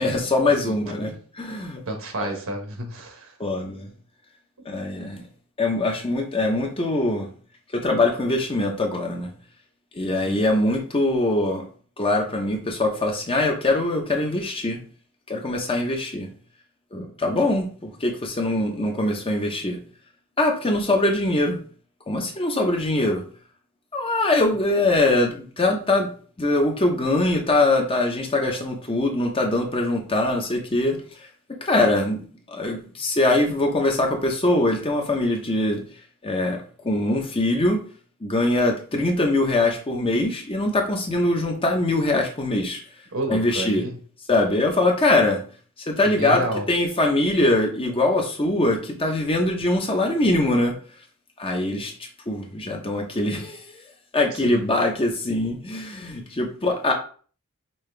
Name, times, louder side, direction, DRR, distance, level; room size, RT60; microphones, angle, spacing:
voice 1, 0.0-1.8 2.2-2.4 3.4-3.9 4.7-5.2 5.6-7.3 7.7-9.3 9.9-11.6 12.0-14.8 15.3-16.3 16.9-19.8 20.4-21.6 22.1-23.2 23.9-26.1 26.4-31.0 31.6-35.8 36.2-37.8 38.2-42.8 43.3-43.8 44.3-45.4 45.9-50.7 51.4-51.9 52.3-53.8 54.1-56.9, left 2 dB, 25° left, 2 dB, 0.8 m, -22 dB
voice 2, 1.8-3.3 10.2-10.4 33.0-33.1 43.1-44.0 46.0-46.6 54.3-54.7, right 1 dB, 65° right, 3 dB, 1.2 m, -30 dB
5.5 x 2.8 x 3.3 m, 0.41 s
head